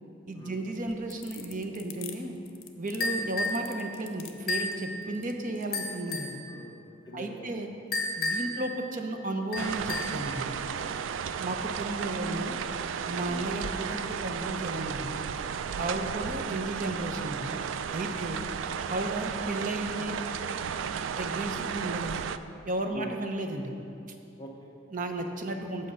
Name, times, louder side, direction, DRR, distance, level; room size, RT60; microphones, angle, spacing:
voice 1, 0.3-2.4 2.8-6.4 7.1-7.7 8.2-10.5 11.3-12.6 13.1-15.1 15.8-17.5 17.9-18.4 18.9-20.2 21.1-22.3 22.7-23.7 24.9-25.9, right 2 dB, 40° right, 4 dB, 0.8 m, -34 dB
sound 1, 0.7-5.9, left 10 dB, 75° left, 0.7 m, -46 dB
sound 2, 3.0-3.7 4.5-4.8 5.7-6.4 7.9-8.6 9.5-10.2, left 2 dB, 50° left, 1.3 m, -31 dB
voice 2, 6.5-6.8 7.0-7.7 8.4-8.6 10.7-11.3 13.3-13.5 15.6-15.7 18.1-18.5 21.5-21.8 22.9-23.1 24.4-24.7, left 1 dB, 20° left, -2 dB, 0.6 m, -45 dB
sound 3, 9.6-22.4, right 7 dB, 70° right, 0.3 m, -34 dB
8.7 x 7.4 x 5.5 m, 2.7 s
head